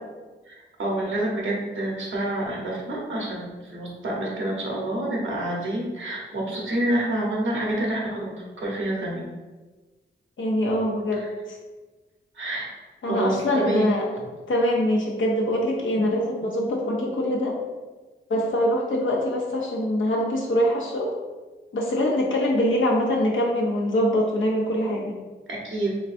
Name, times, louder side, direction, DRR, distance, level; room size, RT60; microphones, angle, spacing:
voice 1, 0.8-9.2 11.1-11.3 12.3-12.7 13.0-13.9 25.6-25.9, right 1 dB, 80° right, -3 dB, 1.1 m, -28 dB
voice 2, 10.4-11.6 13.0-14.0 14.5-17.6 18.3-21.1 21.7-25.1, equal, 75° left, -1 dB, 0.9 m, -23 dB
3.9 x 3.3 x 2.6 m, 1.2 s
cardioid pair, 60°, 20 cm